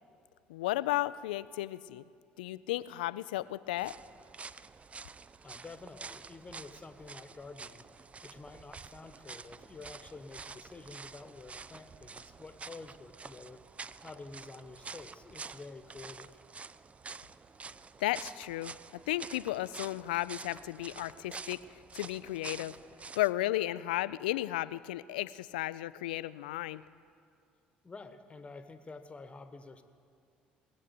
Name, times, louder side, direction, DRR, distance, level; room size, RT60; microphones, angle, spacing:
voice 1, 0.5-2.0 2.4-3.9 18.0-18.7 19.1-22.7 23.2-26.8, left 16 dB, 80° left, 17 dB, 0.3 m, -34 dB
sound 1, 3.8-23.3, right 4 dB, 25° right, 0.4 m, -48 dB
voice 2, 5.4-13.6 14.0-16.4 27.8-29.8, left 3 dB, 25° left, 9 dB, 1.2 m, -49 dB
20.0 x 7.6 x 8.2 m, 2.4 s
hypercardioid pair, 60°, 5 cm